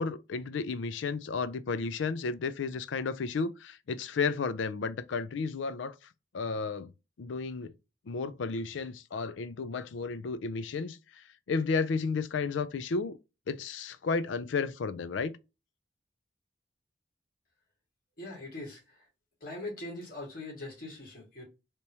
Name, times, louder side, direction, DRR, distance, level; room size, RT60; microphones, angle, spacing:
voice 1, 0.0-5.9 6.3-6.9 7.2-7.7 8.1-11.0 11.5-13.2 13.5-15.3, left 4 dB, 85° left, 0.4 m, -32 dB
voice 2, 18.2-19.1 19.4-21.4, left 2 dB, 50° left, 1.8 m, -41 dB
3.4 x 3.0 x 2.7 m
head